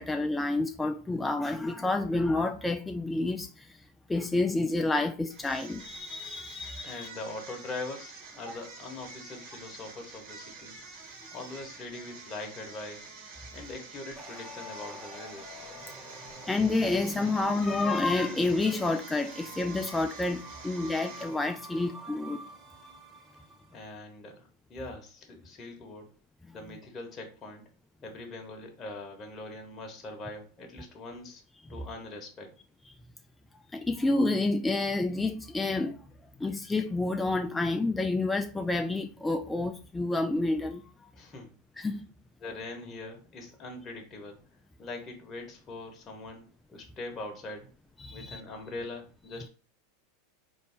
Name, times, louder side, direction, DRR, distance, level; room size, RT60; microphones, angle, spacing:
voice 1, 0.0-3.8 4.1-7.1 16.5-22.4 33.7-36.0 36.4-41.1 41.8-42.1 48.0-48.4, left 2 dB, 10° left, 0.3 m, -29 dB
sound 1, 5.3-21.6, right 4 dB, 60° right, 1.4 m, -48 dB
voice 2, 6.8-10.8 11.3-13.1 13.5-15.5 23.7-26.1 26.5-27.7 28.0-31.4 31.7-32.5 41.1-41.5 41.8-41.9 42.4-44.4 44.8-47.7 48.1-49.5, left 2 dB, 30° left, 1.1 m, -42 dB
sound 2, 14.2-23.8, right 1 dB, 5° right, 1.3 m, -47 dB
4.0 x 2.6 x 3.5 m
hypercardioid pair, 100°, 0 cm